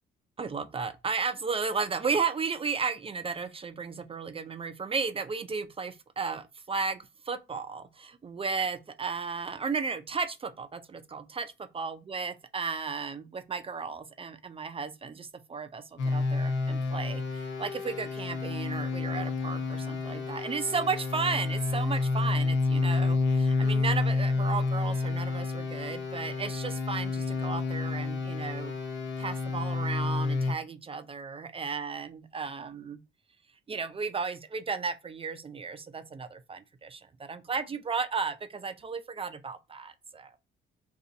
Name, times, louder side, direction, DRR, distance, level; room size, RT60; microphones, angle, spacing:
voice 1, 0.4-28.7 29.2-33.0 33.7-40.4, right 5 dB, 30° right, 0.4 m, -34 dB
sound 1, 16.0-30.5, left 3 dB, 70° left, 0.9 m, -29 dB
2.7 x 2.6 x 3.8 m
cardioid pair, 90°, 20 cm